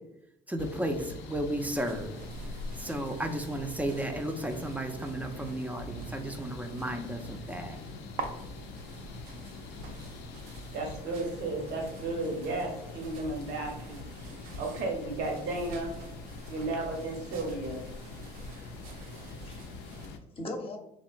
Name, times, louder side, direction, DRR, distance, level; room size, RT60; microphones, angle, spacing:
voice 1, 0.5-2.2 2.8-7.8, right 1 dB, 10° right, 5 dB, 0.4 m, -34 dB
sound 1, 0.6-20.2, left 3 dB, 70° left, 0.4 m, -44 dB
sound 2, 1.7-20.1, right 3 dB, 85° right, 0.4 m, -47 dB
voice 2, 10.7-14.0 14.6-15.9 16.5-17.8, right 2 dB, 70° right, 1 dB, 0.8 m, -34 dB
voice 3, 18.8-20.8, left 1 dB, 30° left, 2 dB, 0.7 m, -42 dB
2.7 x 2.1 x 2.4 m, 0.82 s
hypercardioid pair, 65°, 19 cm